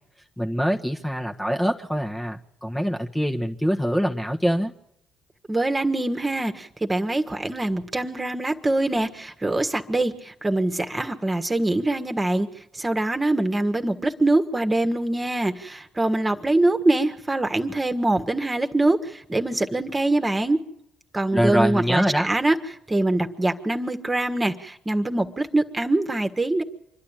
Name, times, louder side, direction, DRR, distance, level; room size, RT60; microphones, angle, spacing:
voice 1, 0.4-4.7 21.3-22.3, equal, 10° left, 1 dB, 1.5 m, -24 dB
voice 2, 5.5-12.5 12.7-20.6 21.1-22.6 22.9-26.6, right 2 dB, 20° right, 7 dB, 1.8 m, -24 dB
26.0 x 11.5 x 8.9 m, 0.80 s
hypercardioid pair, 45°, 0 cm